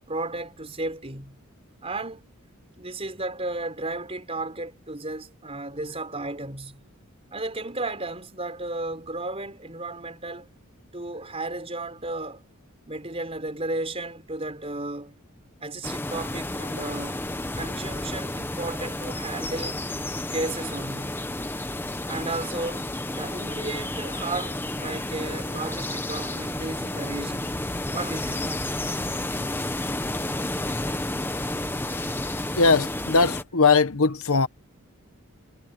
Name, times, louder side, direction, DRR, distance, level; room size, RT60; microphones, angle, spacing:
voice 1, 0.1-1.4 1.8-2.3 2.8-6.8 7.3-10.5 10.9-12.5 12.9-15.1 15.6-17.2 17.5-19.8 20.3-21.2 22.1-22.9 23.2-27.6 27.9-28.6 29.4-29.5, right 2 dB, 25° right, 4.8 m, -34 dB
sound 1, 15.8-33.4, left 1 dB, 10° left, 1.0 m, -31 dB
voice 2, 32.6-34.5, left 4 dB, 75° left, 1.1 m, -20 dB
head